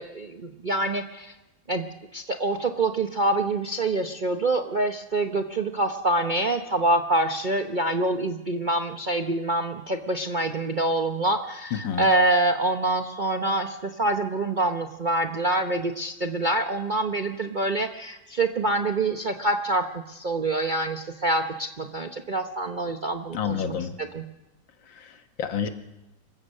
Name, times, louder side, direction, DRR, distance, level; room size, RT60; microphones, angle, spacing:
voice 1, 0.0-1.3 1.7-1.9 2.1-23.6 24.1-24.2, right 2 dB, 40° right, 4 dB, 0.6 m, -26 dB
voice 2, 11.7-12.1 23.3-24.0 24.9-25.7, left 7 dB, 80° left, 7 dB, 2.0 m, -29 dB
26.0 x 15.5 x 6.5 m, 0.97 s
omnidirectional pair, 2.0 m